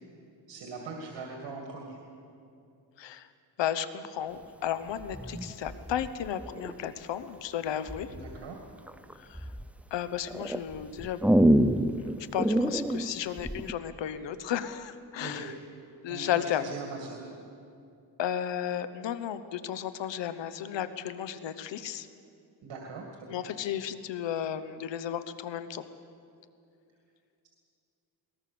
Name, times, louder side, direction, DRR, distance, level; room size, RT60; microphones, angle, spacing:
voice 1, 0.5-2.0 8.1-8.6 15.2-15.5 16.1-17.3 22.6-23.4, right 4 dB, 85° right, 0 dB, 2.5 m, -41 dB
voice 2, 3.0-3.3 3.6-8.1 9.1-9.5 9.9-11.4 12.0-15.5 16.0-16.7 18.2-22.1 23.3-25.9, left 10 dB, 85° left, 12 dB, 1.1 m, -34 dB
sound 1, 5.0-6.9 7.9-8.4 8.9-9.7 10.3-13.7, right 1 dB, 5° right, 0.6 m, -27 dB
22.0 x 19.5 x 6.9 m, 2.6 s
cardioid pair, 100°, 42 cm